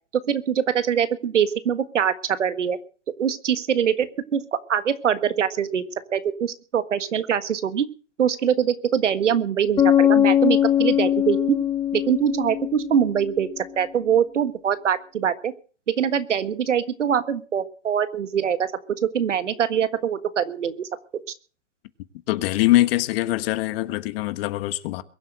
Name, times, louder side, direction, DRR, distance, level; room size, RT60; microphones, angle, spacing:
voice 1, 0.3-2.8 3.2-4.1 4.3-4.4 4.7-5.8 6.1-7.9 8.2-11.6 11.9-13.5 13.8-15.5 16.0-18.7 19.0-20.9, right 8 dB, 90° right, 1.6 m, -23 dB
Bass guitar, 9.8-13.4, left 10 dB, 15° left, 0.9 m, -21 dB
voice 2, 22.3-25.0, left 17 dB, 55° left, 1.4 m, -22 dB
22.0 x 7.9 x 7.7 m
hypercardioid pair, 120°, 35 cm